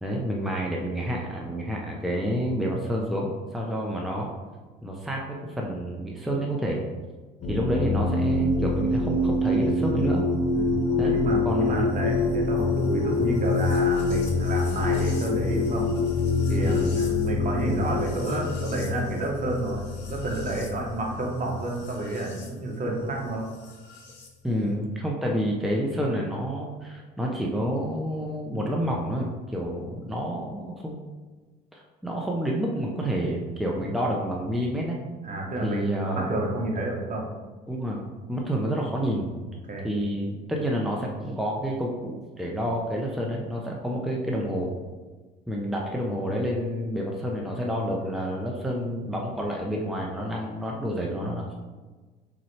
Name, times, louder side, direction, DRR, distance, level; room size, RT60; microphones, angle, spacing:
voice 1, 0.0-4.3 4.8-6.8 7.5-10.2 11.0-11.2 11.4-11.9 16.6-16.9 24.4-31.0 31.7-35.0 35.6-36.3 37.7-39.3 39.8-44.7 45.5-51.6, equal, ahead, -2 dB, 0.7 m, -29 dB
sound 1, 7.4-22.5 23.6-24.3, left 3 dB, 60° left, 1.3 m, -26 dB
voice 2, 10.5-15.9 16.5-23.5 33.8-33.9 35.2-37.3 39.7-39.9, right 2 dB, 40° right, -1 dB, 1.2 m, -30 dB
4.3 x 3.7 x 3.3 m, 1.3 s
supercardioid pair, 80°, 21 cm